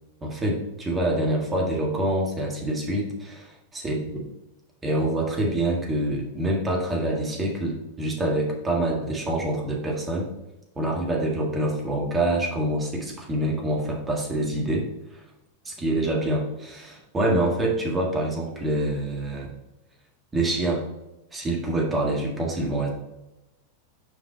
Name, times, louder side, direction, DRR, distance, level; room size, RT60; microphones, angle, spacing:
voice 1, 0.2-3.6 3.8-4.0 4.8-10.3 10.8-14.9 15.1-15.2 15.6-19.5 20.3-20.8 21.3-22.9, right 1 dB, 15° right, -1 dB, 1.8 m, -26 dB
6.4 x 5.0 x 4.1 m, 0.95 s
figure-of-eight pair, 90°, 0 cm